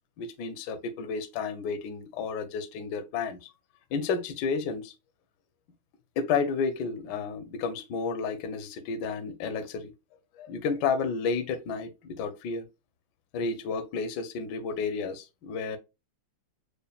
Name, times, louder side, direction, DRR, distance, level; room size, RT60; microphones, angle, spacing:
voice 1, 0.2-3.5 3.9-4.9 6.2-9.9 10.4-12.6 13.3-15.8, left 5 dB, 65° left, 1.1 m, -31 dB
6.6 x 2.4 x 2.4 m
omnidirectional pair, 2.3 m